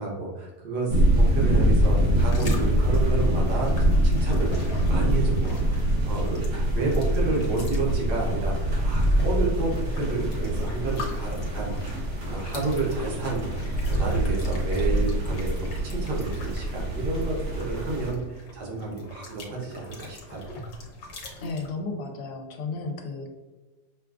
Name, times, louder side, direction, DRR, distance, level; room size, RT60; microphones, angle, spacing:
voice 1, 0.0-13.5 13.7-20.5, right 3 dB, 80° right, -3 dB, 1.5 m, -31 dB
sound 1, 0.9-18.1, equal, 55° right, 1.5 m, -24 dB
sound 2, 1.8-21.7, left 2 dB, 65° left, 1.3 m, -43 dB
voice 2, 21.4-23.3, left 3 dB, 85° left, 4 dB, 1.2 m, -33 dB
6.0 x 2.3 x 2.3 m, 1.3 s
omnidirectional pair, 1.7 m